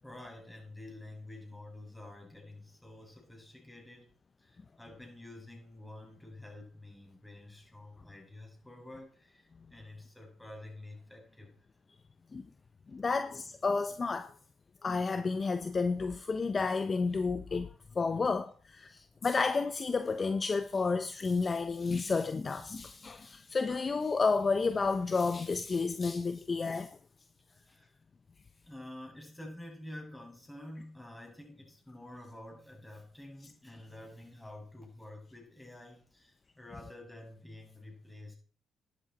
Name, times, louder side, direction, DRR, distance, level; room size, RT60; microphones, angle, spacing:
voice 1, 0.0-4.1 4.4-11.5 19.1-19.2 27.5-28.0 28.6-38.3, left 1 dB, 10° left, 7.0 m, -49 dB
voice 2, 12.9-14.3 14.8-27.0, left 4 dB, 35° left, 1.0 m, -31 dB
13.0 x 11.0 x 4.4 m
supercardioid pair, 70°, 0 cm